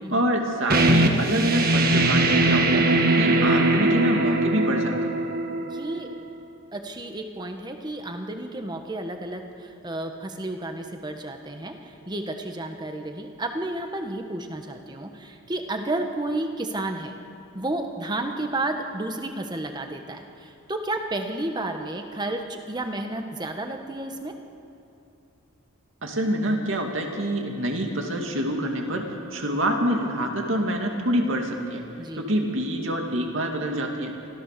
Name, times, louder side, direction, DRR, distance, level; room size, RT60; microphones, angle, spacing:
voice 1, 0.1-2.8 3.1-4.9 26.0-29.0 29.3-31.8 32.2-34.1, right 1 dB, 65° right, 2 dB, 2.4 m, -26 dB
sound 1, 0.7-6.1, right 2 dB, 45° right, 1.5 m, -21 dB
voice 2, 5.7-6.1 6.7-17.1 17.5-24.3 32.0-32.3, right 2 dB, 20° right, 5 dB, 1.3 m, -32 dB
24.5 x 15.5 x 6.8 m, 2.8 s
head